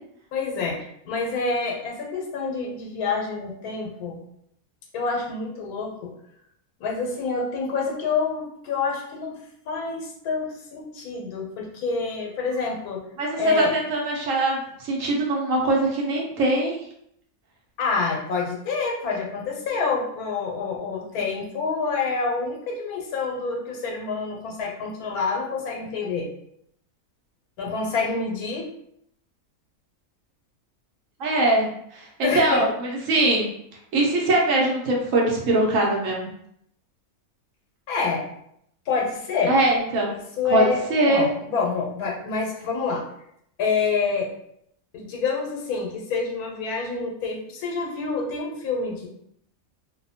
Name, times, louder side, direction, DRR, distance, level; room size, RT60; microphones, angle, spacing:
voice 1, 0.3-0.8 1.0-4.2 4.9-6.1 6.8-9.4 9.7-13.0 13.4-13.7 17.8-26.3 27.6-28.7 32.2-32.6 37.9-38.3 38.9-39.6 40.1-43.0 43.6-44.3 44.9-49.1, left 4 dB, 80° left, 0 dB, 1.2 m, -27 dB
voice 2, 13.2-16.8 31.2-32.7 33.1-33.5 33.9-36.3 39.5-40.1 40.5-40.6 40.9-41.3, right 2 dB, 70° right, -1 dB, 0.9 m, -22 dB
2.7 x 2.1 x 2.7 m, 0.73 s
omnidirectional pair, 1.5 m